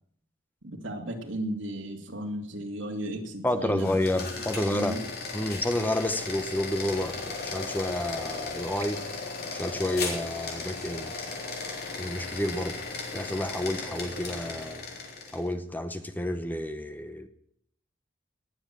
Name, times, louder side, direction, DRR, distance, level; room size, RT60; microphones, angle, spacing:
voice 1, 0.6-3.9 4.5-5.0, right 1 dB, 75° right, 3 dB, 2.7 m, -35 dB
voice 2, 3.4-5.0 5.3-9.0 9.5-11.1 12.0-12.8 13.1-14.8 15.3-17.3, left 1 dB, 10° left, 9 dB, 0.9 m, -30 dB
sound 1, 3.7-15.5, left 3 dB, 50° left, 3.5 m, -36 dB
19.5 x 8.0 x 7.5 m, 0.69 s
head